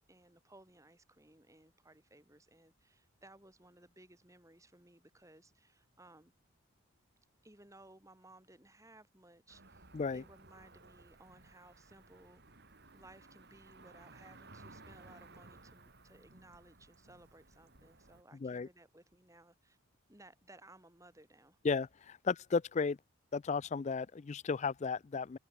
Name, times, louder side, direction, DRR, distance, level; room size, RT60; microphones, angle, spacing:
voice 1, 0.0-6.3 7.4-12.4 12.9-19.8 20.1-21.6, right 2 dB, 15° right, 4.2 m, -60 dB
Cricket / Motor vehicle (road), 9.5-18.2, right 3 dB, 50° right, 3.6 m, -58 dB
voice 2, 21.6-23.0 23.3-25.4, left 5 dB, 30° left, 0.3 m, -34 dB
head